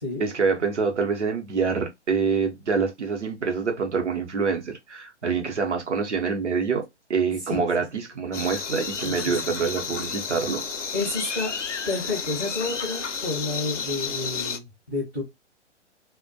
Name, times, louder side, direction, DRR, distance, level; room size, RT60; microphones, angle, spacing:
voice 1, 0.2-10.6, right 5 dB, 75° right, 0.8 m, -26 dB
sound 1, 8.3-14.6, left 6 dB, 90° left, 0.5 m, -31 dB
voice 2, 10.9-11.5 11.8-15.2, left 3 dB, ahead, 0.3 m, -30 dB
2.2 x 2.1 x 2.7 m
figure-of-eight pair, 120°, 35 cm